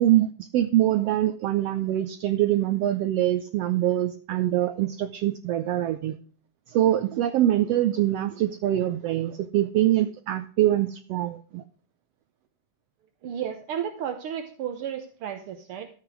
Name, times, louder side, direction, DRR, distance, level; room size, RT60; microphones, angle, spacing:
voice 1, 0.0-6.2 6.7-11.6, right 13 dB, 85° right, 10 dB, 1.4 m, -24 dB
voice 2, 13.2-15.9, right 9 dB, 65° right, 6 dB, 1.4 m, -33 dB
13.5 x 7.9 x 4.7 m, 0.42 s
omnidirectional pair, 3.6 m